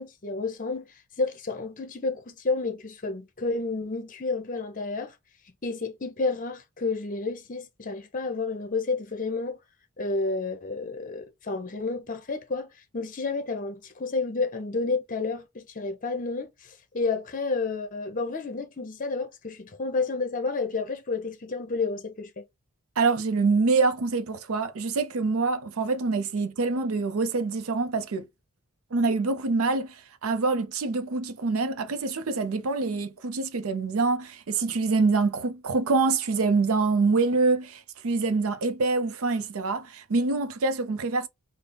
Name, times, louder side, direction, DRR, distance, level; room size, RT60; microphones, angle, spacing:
voice 1, 0.0-5.1 5.6-9.6 10.0-12.7 12.9-22.4, left 3 dB, 40° left, 0.8 m, -30 dB
voice 2, 23.0-28.3 28.9-41.3, right 3 dB, 85° right, 0.5 m, -25 dB
3.4 x 2.1 x 3.8 m
head